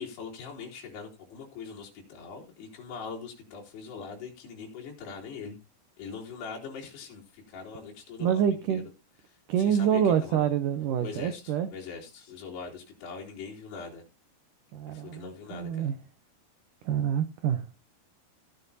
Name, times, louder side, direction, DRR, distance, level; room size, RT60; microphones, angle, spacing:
voice 1, 0.0-5.6 6.0-8.8 9.6-10.5 11.0-14.0 14.9-15.9, left 5 dB, 70° left, -2 dB, 5.2 m, -42 dB
voice 2, 8.2-8.9 9.5-11.7 14.7-15.9 16.8-17.8, right 8 dB, 85° right, 11 dB, 1.8 m, -27 dB
16.5 x 10.0 x 2.7 m, 0.27 s
omnidirectional pair, 4.9 m